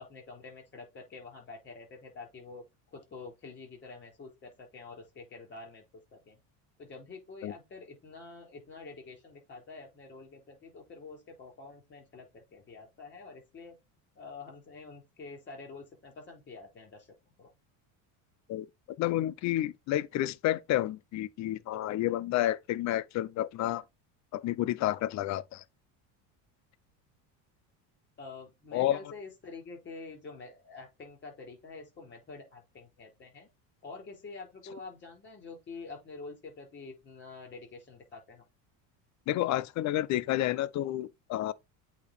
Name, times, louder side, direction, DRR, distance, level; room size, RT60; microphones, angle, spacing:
voice 1, 0.0-2.6 2.9-5.8 6.1-6.4 6.8-13.8 14.2-17.5 28.2-33.5 33.8-38.4, left 3 dB, 25° left, 3.8 m, -47 dB
voice 2, 19.0-23.8 24.3-25.6 28.7-29.0 39.3-41.5, left 14 dB, 45° left, 0.6 m, -30 dB
8.4 x 2.9 x 4.2 m
cardioid pair, 135°, 41 cm